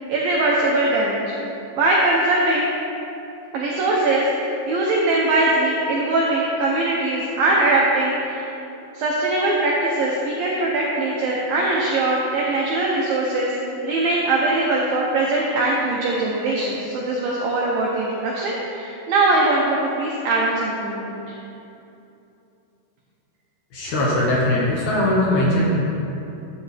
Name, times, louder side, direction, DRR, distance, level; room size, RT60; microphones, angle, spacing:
voice 1, 0.1-1.2 1.7-2.7 3.5-8.5 8.9-13.6 13.8-21.1, right 2 dB, 80° right, -4 dB, 2.1 m, -21 dB
voice 2, 23.7-25.7, left 1 dB, 60° left, -5 dB, 2.1 m, -20 dB
12.0 x 8.1 x 3.4 m, 2.8 s
omnidirectional pair, 5.2 m